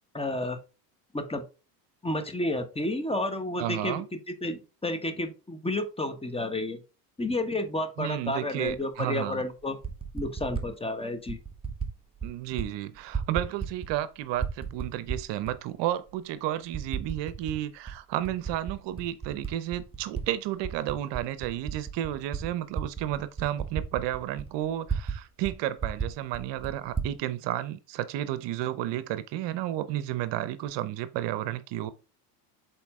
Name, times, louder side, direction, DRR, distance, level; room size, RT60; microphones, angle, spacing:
voice 1, 0.1-0.6 1.1-1.4 2.0-4.0 4.4-6.8 7.2-9.8 10.1-11.4, left 2 dB, 10° left, 1.2 m, -31 dB
voice 2, 3.6-4.1 8.0-9.4 12.2-31.9, right 13 dB, 60° right, 0.8 m, -32 dB
Typing, 8.7-8.8 9.6-10.7 11.3-11.9 12.2-12.7 13.0-14.0 14.3-15.5 16.1-16.2 16.7-17.6 17.9-20.2 20.6-25.2 25.4-25.5 25.8-27.1, right 6 dB, 10° right, 1.4 m, -34 dB
7.0 x 4.4 x 3.6 m
supercardioid pair, 100°, 50 cm